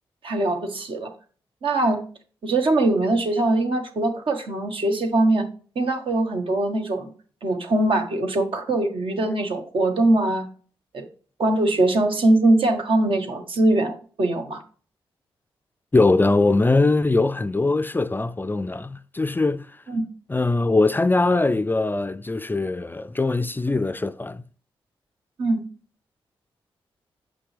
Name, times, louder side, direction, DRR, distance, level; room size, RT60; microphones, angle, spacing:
voice 1, 0.2-1.1 1.6-2.0 2.4-5.5 5.7-7.1 7.4-10.5 10.9-11.0 11.4-14.6 19.9-20.0 25.4-25.6, right 2 dB, 65° right, 1.4 m, -22 dB
voice 2, 15.9-19.7 20.3-24.4, left 3 dB, 20° left, 0.4 m, -21 dB
7.7 x 5.8 x 3.3 m
supercardioid pair, 50°, 10 cm